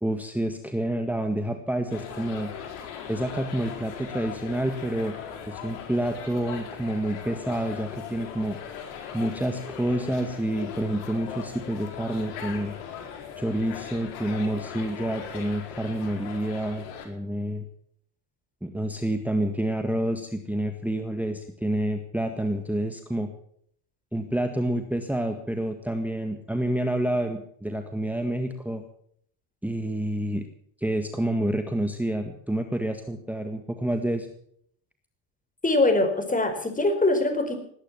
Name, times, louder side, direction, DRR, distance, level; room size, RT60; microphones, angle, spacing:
voice 1, 0.0-2.5 3.1-5.2 5.5-8.6 9.1-12.7 13.4-17.7 18.6-23.3 24.1-28.8 29.6-30.4 30.8-34.3, right 1 dB, 5° right, 6 dB, 1.7 m, -28 dB
sound 1, 1.9-17.1, left 7 dB, 75° left, 4.4 m, -39 dB
voice 2, 35.6-37.6, left 2 dB, 15° left, 8 dB, 4.5 m, -23 dB
19.0 x 10.0 x 7.2 m, 0.65 s
supercardioid pair, 85°, 47 cm